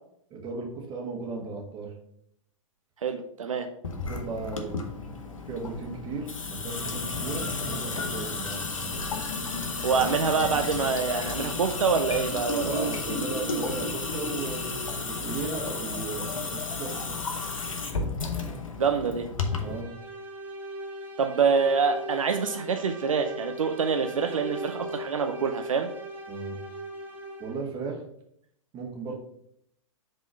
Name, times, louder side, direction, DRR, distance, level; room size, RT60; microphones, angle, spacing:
voice 1, 0.3-1.9 4.1-4.8 5.5-8.9 9.9-10.1 10.4-10.5 12.6-17.2 19.6-19.9 26.3-26.6 27.4-28.0 28.7-29.2, right 4 dB, 25° right, 1 dB, 1.5 m, -36 dB
voice 2, 3.0-3.7 9.8-12.9 18.8-19.3 21.2-25.9, right 5 dB, 75° right, 6 dB, 0.6 m, -26 dB
Water tap faucet / Sink (filling or washing) / Drip, 3.8-19.8, left 3 dB, 75° left, 0.9 m, -32 dB
sound 1, 19.4-27.8, right 1 dB, 10° right, 0.8 m, -39 dB
5.2 x 3.7 x 5.5 m, 0.70 s
figure-of-eight pair, 110°, 17 cm